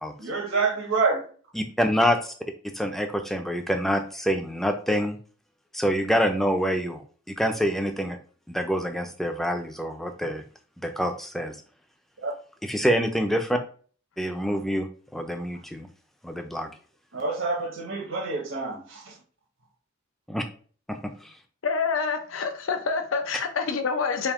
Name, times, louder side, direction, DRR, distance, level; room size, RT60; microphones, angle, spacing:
voice 1, 0.2-1.2 12.2-12.3 17.1-18.8, right 4 dB, 80° right, 1.0 m, -27 dB
voice 2, 1.5-2.3 2.7-5.2 5.7-7.0 7.3-8.2 8.5-10.4 10.8-11.6 12.6-13.6 14.2-14.9 15.1-15.9 16.2-16.7 20.3-20.4 20.9-21.3, equal, ahead, 0.4 m, -26 dB
voice 3, 21.6-24.3, left 5 dB, 85° left, 0.6 m, -27 dB
3.5 x 2.6 x 3.6 m
head